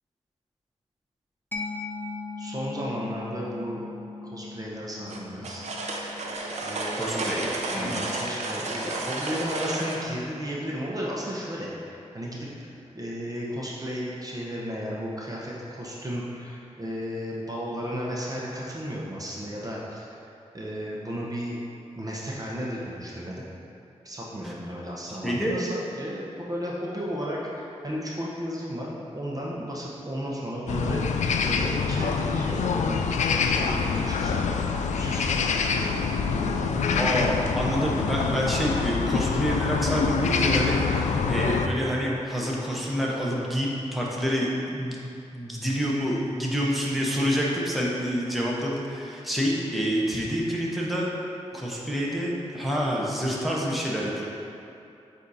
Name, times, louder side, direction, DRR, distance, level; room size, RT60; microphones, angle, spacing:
Mallet percussion, 1.5-8.9, left 3 dB, 15° left, 0.7 m, -40 dB
voice 1, 2.4-3.8 4.2-5.6 6.6-12.5 12.9-20.2 20.5-21.6 22.0-23.4 24.0-33.0 33.6-34.6 35.0-36.7, equal, 30° right, -5 dB, 1.0 m, -34 dB
sound 1, 5.1-10.0, right 2 dB, 70° right, 0.7 m, -32 dB
voice 2, 6.9-7.4 7.7-8.0 24.4-24.5 25.2-25.6 37.0-45.0 45.3-51.1 51.5-54.3, equal, ahead, -5 dB, 1.1 m, -27 dB
sound 2, 30.7-41.7, left 5 dB, 80° left, 0.4 m, -25 dB
8.3 x 2.8 x 4.1 m, 2.7 s
cardioid pair, 55°, 12 cm